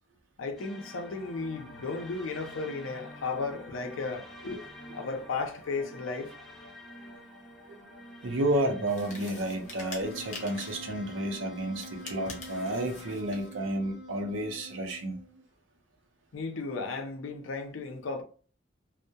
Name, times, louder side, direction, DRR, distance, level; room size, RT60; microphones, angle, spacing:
voice 1, 0.4-4.6 4.9-6.3 16.3-18.2, left 4 dB, 85° left, 0.5 m, -35 dB
sound 1, 0.6-13.2, left 1 dB, ahead, 0.6 m, -48 dB
voice 2, 8.2-15.2, right 1 dB, 75° right, 0.6 m, -31 dB
sound 2, 8.8-10.9 11.7-13.5, left 3 dB, 40° left, 0.7 m, -46 dB
Wind instrument woodwind instrument, 10.0-15.4, left 1 dB, 30° right, 1.2 m, -46 dB
2.7 x 2.1 x 2.2 m
head